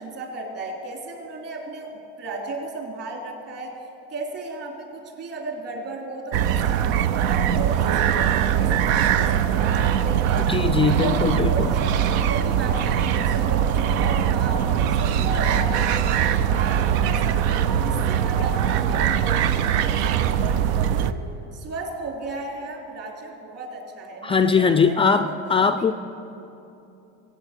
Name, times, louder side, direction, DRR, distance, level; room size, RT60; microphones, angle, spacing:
voice 1, 0.0-3.8 4.1-10.5 10.9-17.5 17.8-21.2 21.5-25.9, right 2 dB, 45° right, 1 dB, 3.6 m, -34 dB
sound 1, 6.3-21.1, right 9 dB, 85° right, 0.7 m, -21 dB
voice 2, 10.5-11.7 24.2-25.9, left 5 dB, 15° left, 10 dB, 0.4 m, -20 dB
23.0 x 8.9 x 6.7 m, 2.9 s
cardioid pair, 120°, 32 cm